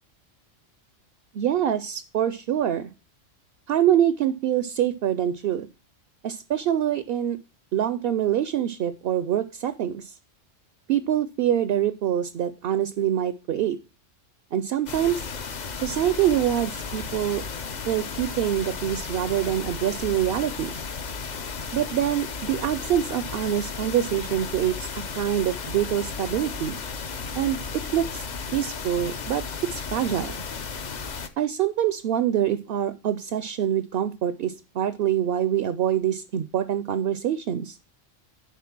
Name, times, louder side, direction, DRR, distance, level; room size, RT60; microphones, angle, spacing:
voice 1, 1.3-2.9 3.7-5.7 6.2-7.4 7.7-10.1 10.9-13.8 14.5-15.3 15.8-17.4 17.9-20.8 21.7-24.9 25.2-26.8 27.3-27.6 27.9-28.3 28.5-29.4 29.7-30.4 31.4-37.8, right 10 dB, 60° right, 13 dB, 0.7 m, -25 dB
sound 1, 14.9-31.3, left 5 dB, 45° left, 0.7 m, -34 dB
10.5 x 3.8 x 5.9 m, 0.31 s
omnidirectional pair, 1.3 m